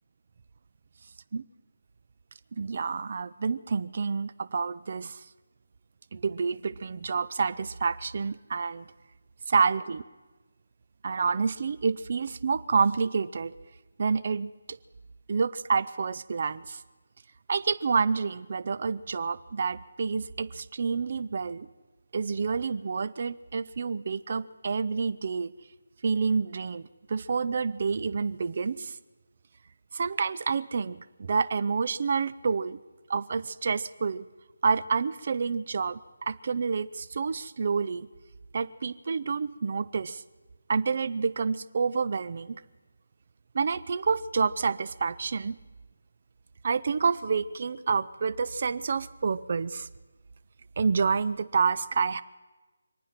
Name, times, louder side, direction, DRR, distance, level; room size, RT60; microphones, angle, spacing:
voice 1, 2.6-5.2 6.1-8.8 9.5-10.0 11.0-13.5 14.0-14.5 15.3-16.8 17.5-21.7 22.1-25.5 26.0-29.0 29.9-32.8 33.1-34.2 34.6-36.0 36.3-38.1 38.5-40.2 40.7-42.5 43.5-45.6 46.6-49.9 50.8-52.2, right 5 dB, 40° right, 14 dB, 0.6 m, -28 dB
25.5 x 9.4 x 5.9 m, 1.2 s
figure-of-eight pair, 170°, 0 cm